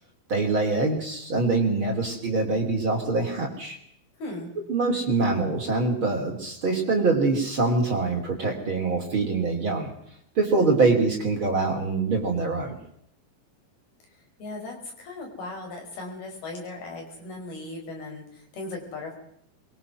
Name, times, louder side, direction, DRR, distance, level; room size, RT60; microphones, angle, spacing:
voice 1, 0.3-3.8 4.7-9.9 10.4-12.8, right 3 dB, 35° right, 2 dB, 3.5 m, -24 dB
voice 2, 4.2-4.5 14.4-19.2, left 2 dB, 75° left, 1 dB, 7.2 m, -37 dB
23.0 x 23.0 x 6.3 m, 0.71 s
omnidirectional pair, 4.5 m